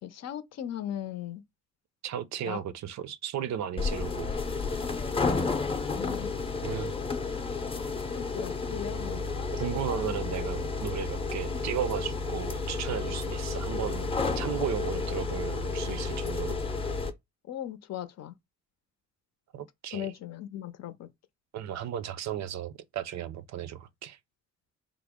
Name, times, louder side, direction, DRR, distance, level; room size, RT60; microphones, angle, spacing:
voice 1, 0.0-1.4 2.5-2.6 6.0-6.3 8.1-9.2 17.5-18.4 19.9-21.1, left 11 dB, 60° left, 0.6 m, -38 dB
voice 2, 2.0-4.3 6.6-6.9 9.6-16.6 19.5-20.1 21.5-24.2, right 9 dB, 65° right, 0.5 m, -35 dB
sound 1, 3.8-17.1, left 4 dB, 20° left, 0.6 m, -31 dB
3.4 x 2.0 x 3.5 m
cardioid pair, 90°, 30 cm